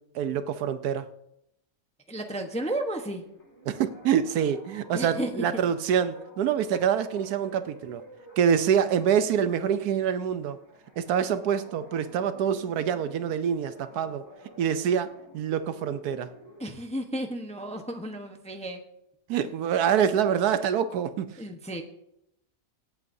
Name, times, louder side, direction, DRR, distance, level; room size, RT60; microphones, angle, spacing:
voice 1, 0.1-1.1 3.7-8.0 8.4-10.6 11.0-14.2 14.6-16.3 19.3-21.3, right 8 dB, 80° right, 11 dB, 1.2 m, -26 dB
voice 2, 2.1-3.2 4.9-5.5 16.6-18.8 21.4-21.8, right 1 dB, 5° left, 4 dB, 0.7 m, -33 dB
sound 1, 3.2-16.7, right 1 dB, 85° left, 3.8 m, -51 dB
25.0 x 8.4 x 2.7 m, 0.80 s
omnidirectional pair, 1.7 m